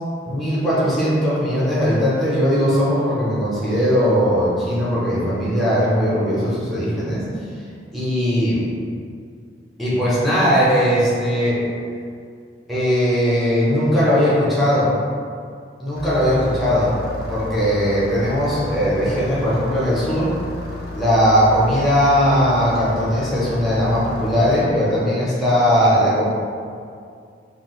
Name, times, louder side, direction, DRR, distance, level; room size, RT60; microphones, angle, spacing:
voice 1, 0.2-7.2 7.9-8.6 9.8-11.7 12.7-14.9 15.8-16.9 17.3-20.3 20.9-26.3, equal, ahead, -9 dB, 0.7 m, -19 dB
Engine starting, 15.9-24.6, left 2 dB, 55° left, 0.4 m, -32 dB
2.6 x 2.3 x 3.0 m, 2.3 s
head